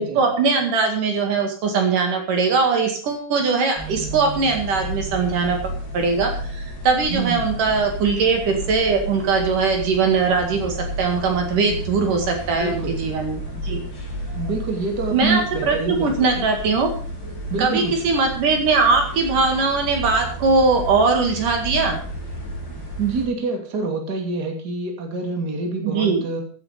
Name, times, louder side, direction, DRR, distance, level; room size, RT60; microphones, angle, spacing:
voice 1, 0.0-13.8 15.1-16.9 17.6-22.0 25.8-26.2, right 4 dB, 65° right, 3 dB, 3.5 m, -21 dB
sound 1, 3.8-23.3, equal, 25° left, 5.8 m, -32 dB
voice 2, 7.1-7.5 12.6-13.0 14.3-16.4 17.5-18.1 23.0-26.4, right 3 dB, 30° right, 2 dB, 2.9 m, -26 dB
15.0 x 9.5 x 5.0 m, 0.42 s
omnidirectional pair, 4.2 m